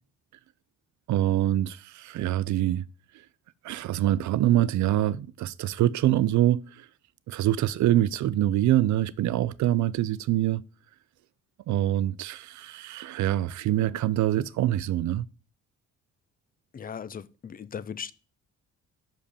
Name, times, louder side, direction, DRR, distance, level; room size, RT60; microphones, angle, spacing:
voice 1, 1.1-2.8 3.6-6.9 7.3-10.6 11.7-15.3, right 13 dB, 70° right, 0.6 m, -25 dB
voice 2, 16.7-18.1, left 7 dB, 30° left, 0.5 m, -38 dB
6.5 x 5.2 x 6.9 m
cardioid pair, 90°, 30 cm